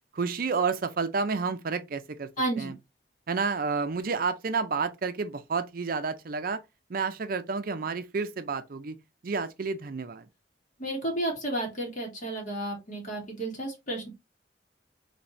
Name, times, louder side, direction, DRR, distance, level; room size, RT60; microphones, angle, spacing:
voice 1, 0.1-2.3 2.6-2.7 3.3-6.6 6.9-10.3, right 4 dB, 55° right, 0.5 m, -30 dB
voice 2, 2.4-2.7 10.8-14.1, right 1 dB, 45° left, 2.1 m, -32 dB
4.1 x 3.4 x 3.1 m
head